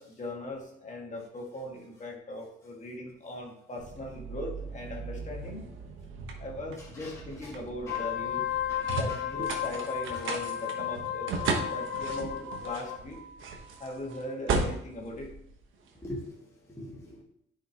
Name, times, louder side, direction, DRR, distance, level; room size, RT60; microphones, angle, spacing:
voice 1, 0.0-5.7 6.4-8.5 8.9-11.3 11.7-13.2 13.8-15.3, left 1 dB, 40° left, -1 dB, 2.1 m, -39 dB
sound 1, 3.8-16.1, right 4 dB, 80° right, 1.3 m, -36 dB
voice 2, 6.8-7.6 7.9-8.1 8.4-9.5 10.1-10.2 15.9-17.2, left 1 dB, 15° left, -4 dB, 1.7 m, -44 dB
Wind instrument woodwind instrument, 7.8-13.0, left 11 dB, 80° left, 0.5 m, -34 dB
10.0 x 5.3 x 3.0 m, 0.73 s
cardioid pair, 90°, 20 cm